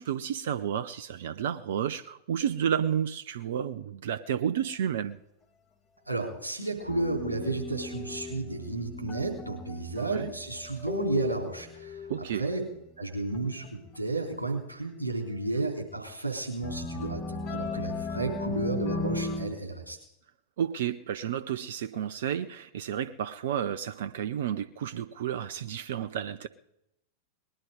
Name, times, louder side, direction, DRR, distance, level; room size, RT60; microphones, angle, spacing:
voice 1, 0.0-5.2 10.0-10.3 12.1-12.4 15.5-15.7 20.6-26.5, right 9 dB, 60° right, 0.6 m, -31 dB
voice 2, 6.1-12.1 12.3-12.6 13.0-20.0, right 3 dB, 85° right, 3.4 m, -32 dB
sound 1, 6.8-12.8 13.3-13.9 15.0-15.1 16.6-19.5, left 3 dB, 30° left, 3.3 m, -36 dB
20.0 x 11.0 x 5.1 m
figure-of-eight pair, 90°, 0 cm